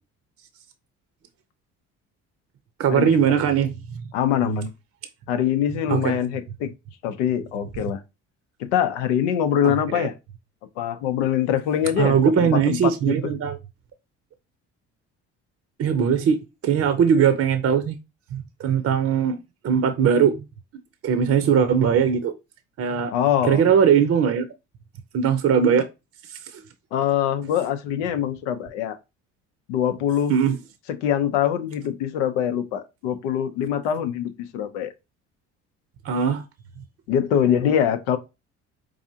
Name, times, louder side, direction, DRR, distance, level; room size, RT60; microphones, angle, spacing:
voice 1, 2.8-3.7 5.9-6.2 9.9-10.1 12.0-13.6 15.8-16.4 16.6-18.0 18.3-19.4 19.6-20.4 21.0-22.3 22.8-23.1 23.4-24.5 25.1-25.9 26.5-26.6 30.3-30.6 36.0-36.4, right 7 dB, 45° right, 0.6 m, -20 dB
voice 2, 4.1-4.7 5.3-6.7 7.0-8.0 8.6-10.1 10.8-13.2 23.1-23.6 26.9-29.0 29.7-30.3 31.0-34.9 37.1-38.2, left 9 dB, 90° left, 0.6 m, -23 dB
4.7 x 2.4 x 2.7 m
supercardioid pair, 65°, 34 cm